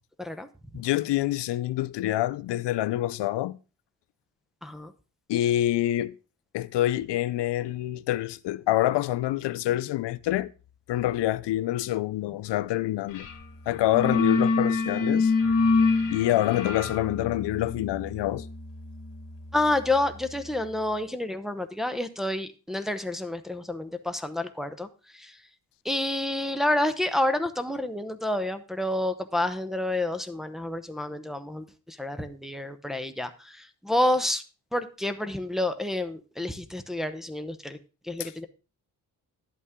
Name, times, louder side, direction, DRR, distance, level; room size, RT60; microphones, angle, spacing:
voice 1, 0.7-3.6 5.3-6.1 6.5-10.5 10.9-13.3 13.7-15.3 16.1-18.5 38.2-38.3, left 14 dB, 80° left, 0.6 m, -26 dB
voice 2, 4.6-4.9 19.5-24.9 25.1-25.3 25.8-34.4 34.7-37.8 38.1-38.5, left 1 dB, ahead, 0.8 m, -29 dB
sound 1, 13.1-13.4 13.7-20.3, left 4 dB, 50° left, 2.2 m, -27 dB
11.0 x 8.4 x 3.7 m
cardioid pair, 110°, 41 cm